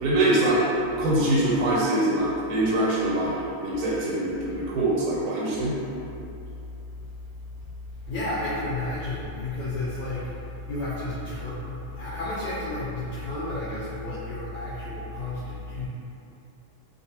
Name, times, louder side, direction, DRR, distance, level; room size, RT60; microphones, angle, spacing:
voice 1, 0.0-0.6 1.0-3.3 3.6-5.7, right 1 dB, 85° right, -6 dB, 1.5 m, -23 dB
voice 2, 7.9-15.9, left 2 dB, 75° left, -9 dB, 1.1 m, -32 dB
3.2 x 2.4 x 2.8 m, 2.8 s
omnidirectional pair, 2.3 m